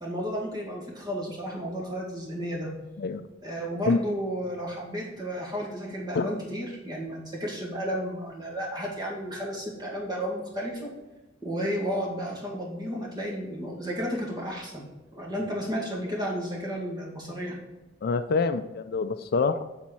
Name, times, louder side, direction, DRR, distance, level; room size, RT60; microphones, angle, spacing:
voice 1, 0.0-2.7 3.4-10.9 11.4-14.8 15.1-17.6, equal, 20° right, -2 dB, 1.9 m, -32 dB
voice 2, 18.0-19.6, left 4 dB, 55° left, 10 dB, 0.4 m, -26 dB
7.6 x 4.2 x 5.4 m, 1.0 s
head